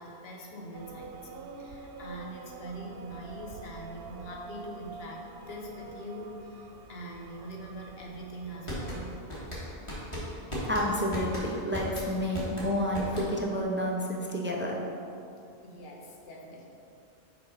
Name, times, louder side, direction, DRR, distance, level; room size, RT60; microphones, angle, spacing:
voice 1, 0.0-9.1 15.6-16.7, right 1 dB, 60° left, -1 dB, 1.1 m, -43 dB
sound 1, 0.7-9.4, right 4 dB, 60° right, 0.7 m, -47 dB
sound 2, 8.4-13.6, equal, 25° left, 1.7 m, -36 dB
voice 2, 10.7-14.8, equal, 20° right, -1 dB, 0.3 m, -30 dB
6.0 x 4.4 x 5.6 m, 2.6 s
omnidirectional pair, 1.2 m